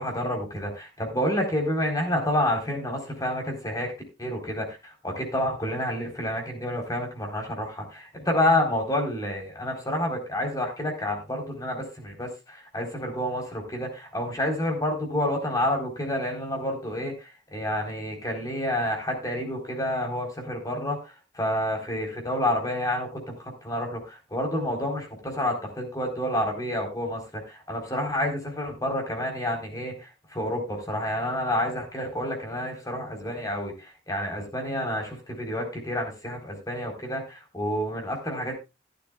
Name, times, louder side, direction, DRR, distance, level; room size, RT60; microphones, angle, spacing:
voice 1, 0.0-3.9 4.2-38.6, left 1 dB, 20° left, 2 dB, 3.9 m, -29 dB
15.0 x 12.0 x 2.4 m, 0.26 s
head